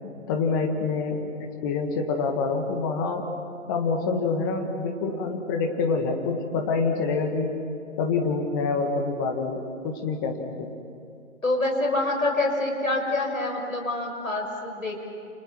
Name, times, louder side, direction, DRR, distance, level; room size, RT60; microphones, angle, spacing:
voice 1, 0.3-3.3 3.7-7.5 8.0-10.7, left 4 dB, 15° left, 3 dB, 1.8 m, -26 dB
voice 2, 11.4-15.0, left 2 dB, 80° left, 3 dB, 6.2 m, -26 dB
30.0 x 29.0 x 6.2 m, 2.5 s
figure-of-eight pair, 150°, 40 cm